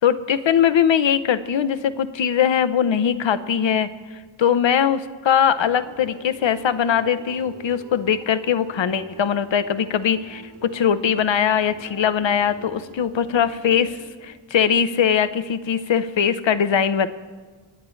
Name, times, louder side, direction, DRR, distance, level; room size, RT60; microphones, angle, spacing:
voice 1, 0.0-3.9 4.4-17.1, left 8 dB, 65° left, 13 dB, 0.7 m, -21 dB
sound 1, 5.6-14.5, right 3 dB, 75° right, 3.1 m, -44 dB
28.5 x 9.6 x 3.2 m, 1.4 s
wide cardioid pair, 105°, 48 cm